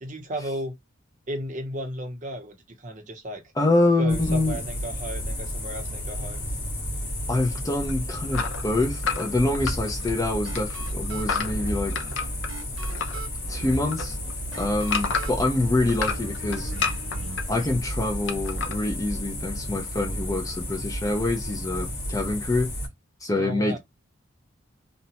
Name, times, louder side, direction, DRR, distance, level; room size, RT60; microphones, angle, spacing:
voice 1, 0.0-0.7 1.3-3.4 4.0-6.4 23.4-23.8, equal, 40° right, 0.7 m, -34 dB
voice 2, 3.6-4.6 7.3-11.9 13.5-14.2 14.6-16.7 17.5-22.7 23.2-23.8, left 2 dB, 15° left, 0.4 m, -25 dB
sound 1, 4.1-22.9, equal, 50° left, 1.5 m, -32 dB
sound 2, 8.3-10.2 10.5-13.2 13.5-15.5 15.9-17.4 18.3-18.8, left 5 dB, 65° left, 0.5 m, -30 dB
sound 3, 9.6-17.8, right 2 dB, 80° right, 0.6 m, -39 dB
2.8 x 2.1 x 2.8 m
head